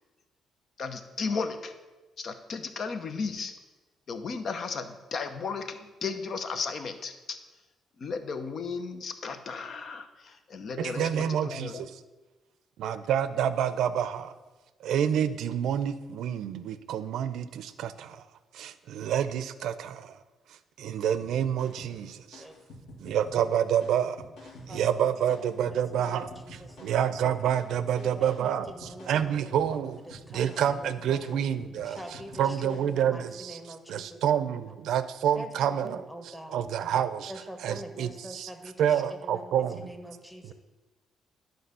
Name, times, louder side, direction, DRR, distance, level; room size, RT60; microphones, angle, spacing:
voice 1, 0.8-1.7 2.2-3.5 4.1-7.4 8.0-11.8, left 5 dB, 55° left, 9 dB, 0.8 m, -35 dB
voice 2, 10.8-12.0 12.8-14.3 14.8-18.2 18.5-20.2 20.8-22.4 23.0-24.3 24.7-32.0 32.4-33.6 33.9-37.3 37.6-38.5 38.8-39.9, right 9 dB, 80° right, 13 dB, 0.5 m, -28 dB
sound 1, 21.2-33.0, left 1 dB, 80° left, 1.9 m, -49 dB
voice 3, 21.9-22.6 24.7-26.9 28.0-29.6 30.1-31.4 31.8-34.7 35.4-36.7 37.3-40.5, equal, 5° left, 5 dB, 1.3 m, -45 dB
10.5 x 3.9 x 6.7 m, 1.2 s
cardioid pair, 90°, 0 cm